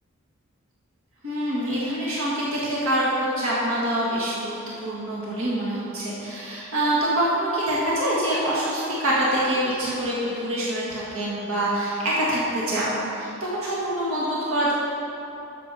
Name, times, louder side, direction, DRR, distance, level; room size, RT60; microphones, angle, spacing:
voice 1, 1.2-14.7, right 1 dB, 70° right, -7 dB, 1.7 m, -25 dB
13.0 x 6.7 x 4.1 m, 2.9 s
head